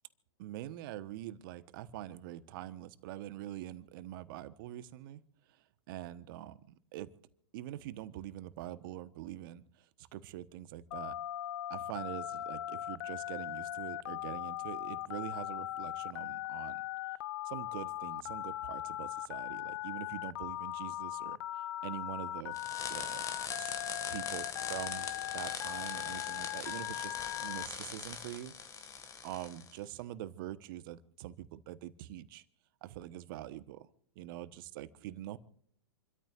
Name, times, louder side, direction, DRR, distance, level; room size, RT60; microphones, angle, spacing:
voice 1, 0.4-5.2 5.5-7.1 7.5-11.2 11.7-16.9 17.4-22.6 22.9-23.7 24.1-28.5 29.2-32.4 32.8-33.9 34.1-35.4, right 13 dB, 50° right, 13 dB, 1.1 m, -44 dB
Telephone, 10.9-27.7, left 14 dB, 60° left, 0.5 m, -39 dB
sound 1, 22.5-29.8, left 6 dB, 25° left, 1.8 m, -42 dB
28.5 x 13.0 x 2.5 m, 0.64 s
hypercardioid pair, 115°, 14 cm